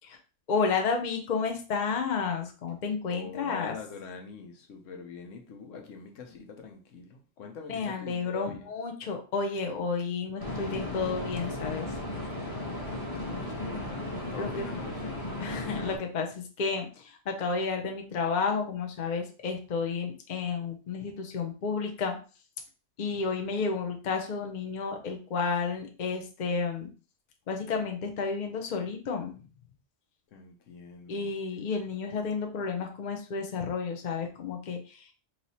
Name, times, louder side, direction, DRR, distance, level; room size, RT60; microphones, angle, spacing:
voice 1, 0.5-3.7 7.7-11.9 14.4-14.6 15.4-22.2 23.0-26.9 27.5-29.4 31.1-35.1, left 5 dB, 45° left, 0.7 m, -31 dB
voice 2, 3.1-8.7 12.6-15.2 30.3-31.3, left 5 dB, 80° left, 1.1 m, -44 dB
sound 1, 10.4-16.0, left 1 dB, 20° left, 1.1 m, -35 dB
3.2 x 2.8 x 4.1 m
omnidirectional pair, 1.3 m